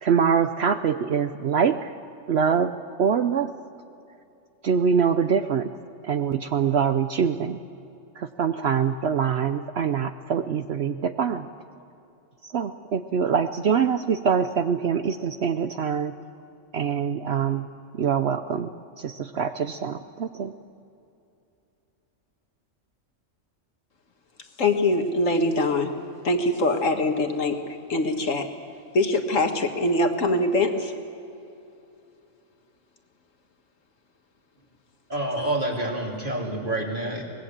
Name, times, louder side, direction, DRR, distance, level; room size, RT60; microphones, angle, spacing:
voice 1, 0.0-1.9 2.3-3.5 4.6-5.7 6.0-7.6 8.2-11.5 12.5-16.1 16.7-17.7 18.0-18.7 19.0-20.5, right 7 dB, 60° right, 9 dB, 0.9 m, -24 dB
voice 2, 24.6-25.9 26.2-28.5 28.9-30.9 35.4-35.5, left 2 dB, 75° left, 5 dB, 2.1 m, -23 dB
voice 3, 35.1-37.2, right 1 dB, 40° right, -1 dB, 3.5 m, -28 dB
24.0 x 20.0 x 7.4 m, 2.7 s
omnidirectional pair, 1.3 m